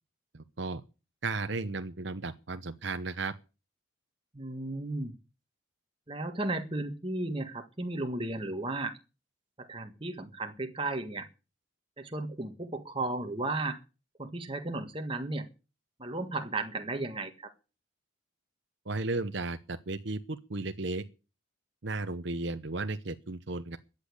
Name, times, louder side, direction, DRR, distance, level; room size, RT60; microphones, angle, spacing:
voice 1, 0.3-0.8 1.2-3.3 18.9-21.1 21.8-23.8, right 3 dB, 60° right, 9 dB, 0.8 m, -34 dB
voice 2, 4.3-5.1 6.1-9.0 9.6-11.3 12.0-13.8 14.2-15.5 16.0-17.5, right 2 dB, 25° right, 6 dB, 1.6 m, -34 dB
13.5 x 8.4 x 8.4 m, 0.32 s
head